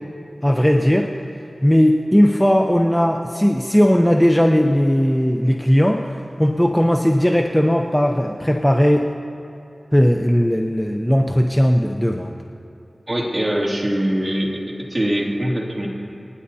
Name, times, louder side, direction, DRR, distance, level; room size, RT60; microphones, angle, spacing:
voice 1, 0.4-1.1 1.6-9.1 9.9-12.3, equal, 5° left, 2 dB, 0.7 m, -17 dB
voice 2, 13.1-15.9, equal, 30° right, -3 dB, 2.5 m, -22 dB
28.0 x 10.0 x 2.8 m, 2.9 s
wide cardioid pair, 55°, 0 cm